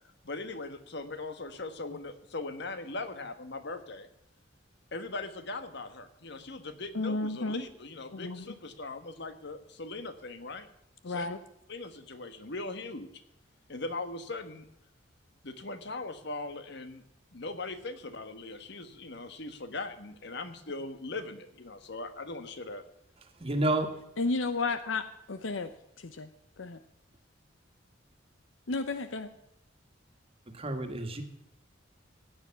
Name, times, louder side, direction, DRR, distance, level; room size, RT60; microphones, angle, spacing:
voice 1, 0.2-4.1 4.9-10.7 11.1-11.4 11.7-13.1 13.7-14.7 15.4-17.0 17.3-22.9, left 3 dB, 60° left, 10 dB, 1.4 m, -40 dB
voice 2, 6.9-7.6 8.1-8.4 11.0-11.4 24.2-25.7 26.0-26.3 26.6-26.8 28.7-29.3, left 3 dB, 85° left, 11 dB, 0.8 m, -32 dB
voice 3, 23.4-23.9 30.5-31.2, right 2 dB, 30° right, 5 dB, 1.8 m, -29 dB
16.0 x 9.7 x 5.8 m, 0.83 s
head